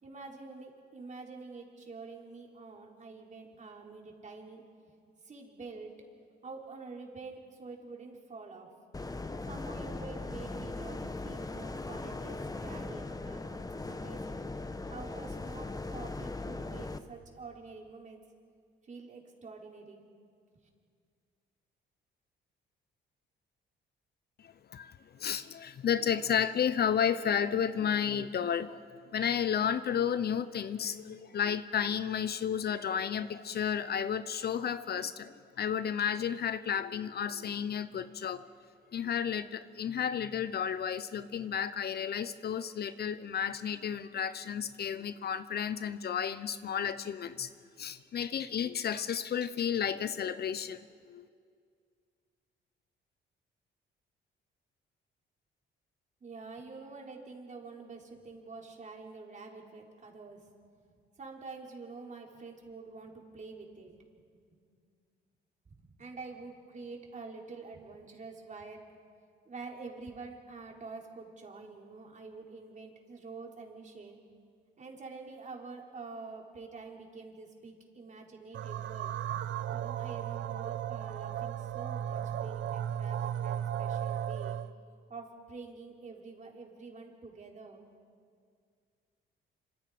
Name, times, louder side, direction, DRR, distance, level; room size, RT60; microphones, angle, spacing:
voice 1, 0.0-4.6 5.2-5.9 6.4-8.7 9.5-18.2 18.8-20.0 20.6-20.7 56.2-60.5 60.8-60.9 61.2-64.4 65.7-69.0 69.5-74.2 74.8-79.2 79.7-84.6 85.1-87.9, right 4 dB, 40° right, 0 dB, 4.3 m, -47 dB
sound 1, 8.9-17.0, left 2 dB, 20° left, 1.1 m, -39 dB
voice 2, 25.2-28.8 29.1-38.5 38.9-47.5 47.8-50.8 51.1-51.3, left 8 dB, 55° left, 13 dB, 0.9 m, -32 dB
sound 2, 78.5-84.7, right 10 dB, 70° right, 0.8 m, -35 dB
26.5 x 26.0 x 5.1 m, 2.1 s
cardioid pair, 90°, 20 cm